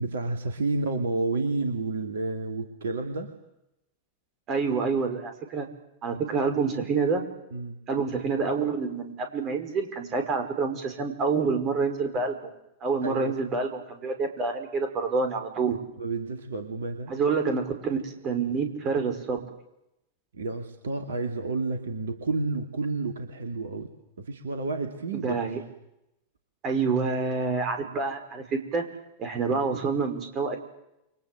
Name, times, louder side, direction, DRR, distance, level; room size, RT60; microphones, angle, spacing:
voice 1, 0.0-3.3 6.3-6.4 7.5-7.8 13.0-13.5 16.0-17.1 20.3-23.9 24.2-25.4 27.8-28.0, right 3 dB, 65° right, 5 dB, 2.6 m, -30 dB
voice 2, 4.5-5.7 6.0-7.2 7.9-12.4 12.8-15.8 17.1-19.4 25.1-25.6 26.6-28.8 29.2-30.6, right 4 dB, 35° right, 6 dB, 5.7 m, -27 dB
29.0 x 24.5 x 7.9 m, 0.87 s
figure-of-eight pair, 90°, 0 cm